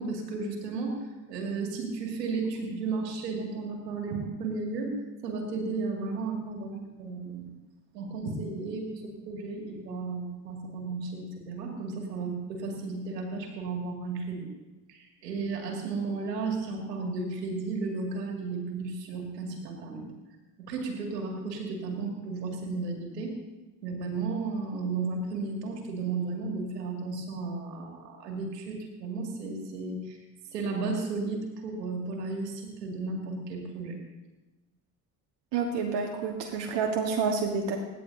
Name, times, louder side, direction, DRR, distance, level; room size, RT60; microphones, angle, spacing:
voice 1, 0.0-4.9 5.2-7.5 7.9-14.5 14.9-20.1 20.6-23.3 23.8-30.2 30.5-34.0, right 4 dB, 85° right, 1 dB, 2.4 m, -34 dB
voice 2, 35.5-37.8, right 5 dB, 60° right, 1 dB, 1.6 m, -28 dB
25.5 x 10.5 x 2.7 m, 1.1 s
hypercardioid pair, 50°, 47 cm